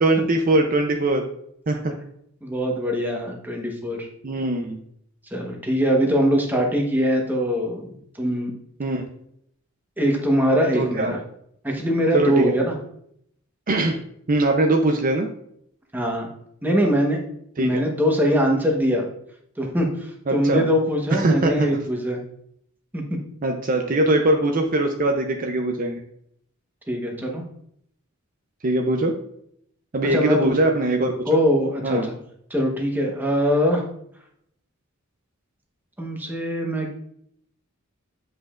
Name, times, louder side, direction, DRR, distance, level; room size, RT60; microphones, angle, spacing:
voice 1, 0.0-1.2 1.7-1.9 4.2-4.8 8.8-9.0 10.7-11.1 12.1-12.5 13.7-14.0 14.3-15.3 17.6-17.8 20.3-20.6 21.1-21.7 23.4-26.0 28.6-29.1 29.9-31.4 31.8-32.1, right 2 dB, 40° right, 3 dB, 0.6 m, -21 dB
voice 2, 2.4-4.1 5.3-8.5 10.0-11.2 11.6-12.7 15.9-16.3 16.6-17.2 17.6-19.1 19.6-22.2 22.9-23.0 26.9-27.4 30.1-30.5 31.3-32.0 32.5-33.8 36.0-36.9, equal, 10° right, 1 dB, 1.1 m, -22 dB
7.9 x 5.1 x 2.4 m, 0.70 s
head